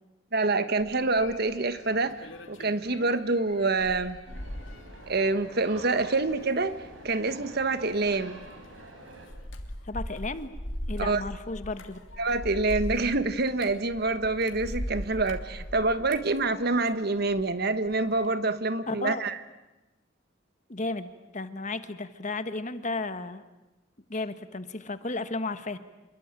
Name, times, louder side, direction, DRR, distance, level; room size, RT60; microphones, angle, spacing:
voice 1, 0.3-4.2 5.1-6.8 7.0-8.4 11.0-11.2 12.2-19.4, right 3 dB, 55° right, 12 dB, 1.3 m, -26 dB
sound 1, 0.8-17.5 17.8-18.3, equal, 75° left, 3.0 m, -40 dB
sound 2, 4.2-9.3, right 1 dB, 90° right, 6.7 m, -47 dB
voice 2, 9.9-10.5 10.9-12.0 18.9-19.2 20.7-23.4 24.1-25.8, left 3 dB, 40° left, 11 dB, 1.3 m, -33 dB
27.5 x 22.0 x 9.0 m, 1.0 s
head